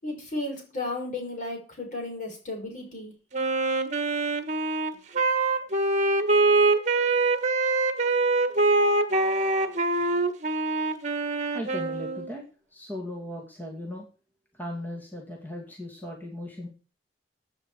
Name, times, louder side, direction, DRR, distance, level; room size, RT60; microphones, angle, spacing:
voice 1, 0.0-3.1, left 2 dB, 45° left, 1 dB, 5.7 m, -34 dB
Wind instrument woodwind instrument, 3.3-12.3, right 3 dB, 45° right, 1.5 m, -24 dB
voice 2, 11.5-12.4 12.7-14.1 14.5-16.7, left 1 dB, 10° left, 0 dB, 2.4 m, -37 dB
16.0 x 8.7 x 4.9 m, 0.35 s
head